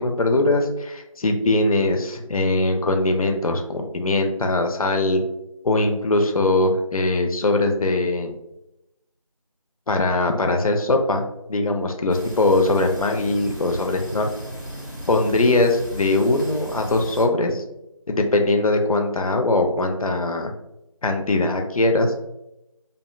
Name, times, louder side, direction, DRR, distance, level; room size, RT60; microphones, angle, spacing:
voice 1, 0.0-5.2 5.6-8.3 9.9-11.2 11.5-14.3 15.1-17.6 18.1-20.5 21.0-22.1, left 2 dB, 75° left, 4 dB, 0.4 m, -21 dB
sound 1, 12.1-17.2, equal, 35° right, 0.7 m, -36 dB
2.5 x 2.1 x 2.3 m, 0.88 s
figure-of-eight pair, 175°, 18 cm